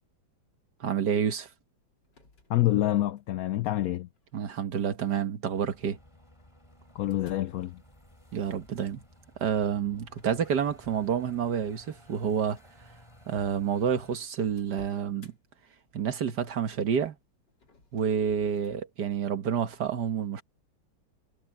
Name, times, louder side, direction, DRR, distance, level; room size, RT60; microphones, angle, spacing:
voice 1, 0.8-1.5 4.3-6.0 8.3-9.0 9.4-12.6 13.3-15.3 15.9-17.2 17.9-20.4, right 7 dB, 60° right, 1.8 m, -29 dB
sound 1, 2.0-3.5 4.2-4.6 5.7-7.6 10.1-11.6 12.1-12.4 13.1-13.2 13.4-13.5 13.8-15.4 17.5-18.8, left 2 dB, 60° left, 4.1 m, -57 dB
voice 2, 2.5-4.1 6.9-7.8, left 14 dB, 85° left, 0.7 m, -27 dB
sound 2, 5.5-14.2, equal, 15° left, 5.0 m, -56 dB
omnidirectional pair, 2.1 m